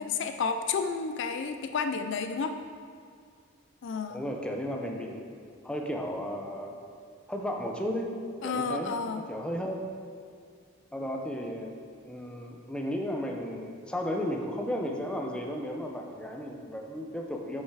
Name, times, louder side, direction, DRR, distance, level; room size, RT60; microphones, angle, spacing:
voice 1, 0.0-2.5 3.8-4.2 8.4-9.3, left 5 dB, 60° left, 7 dB, 0.4 m, -31 dB
voice 2, 4.1-5.2 5.6-6.7 7.3-8.2 8.4-9.0 9.3-9.8 10.9-11.7 12.0-17.6, equal, 5° left, 1 dB, 0.6 m, -34 dB
6.5 x 5.6 x 4.7 m, 2.2 s
head